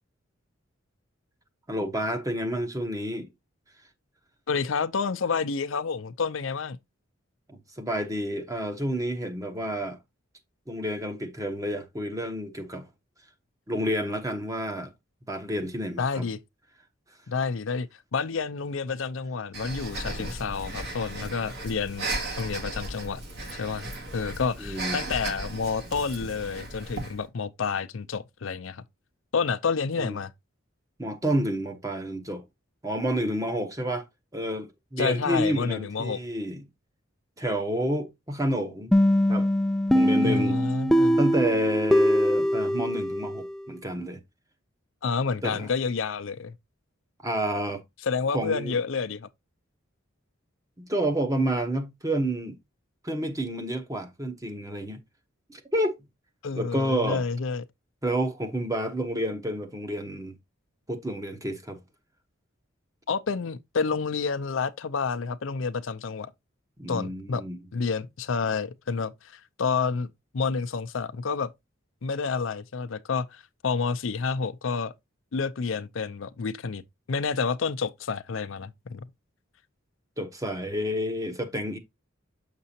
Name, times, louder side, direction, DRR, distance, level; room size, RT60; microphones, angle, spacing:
voice 1, 1.7-3.3 7.5-10.0 10.7-12.8 13.7-14.9 15.3-16.2 24.6-25.0 30.0-30.2 31.0-32.4 32.8-34.0 34.3-36.6 37.4-38.9 39.3-39.5 39.9-40.6 41.2-44.2 45.4-45.7 47.2-47.8 48.3-48.8 50.8-52.6 53.0-55.0 55.5-55.9 56.5-57.2 58.0-60.3 60.9-61.8 66.8-67.6 80.2-81.8, right 1 dB, 15° right, 0.9 m, -29 dB
voice 2, 4.5-6.8 16.0-16.4 17.3-22.1 22.4-23.2 23.5-28.8 29.3-30.3 35.0-36.2 40.2-41.2 45.0-46.5 48.0-49.3 56.4-57.6 63.1-66.3 66.9-67.4 67.7-71.5 72.0-74.9 75.3-76.8 77.1-79.1, left 5 dB, 70° left, 0.5 m, -29 dB
Breathing, 19.5-27.2, right 2 dB, 60° right, 1.9 m, -36 dB
sound 1, 38.9-43.6, equal, ahead, 0.3 m, -22 dB
6.6 x 6.0 x 2.7 m
head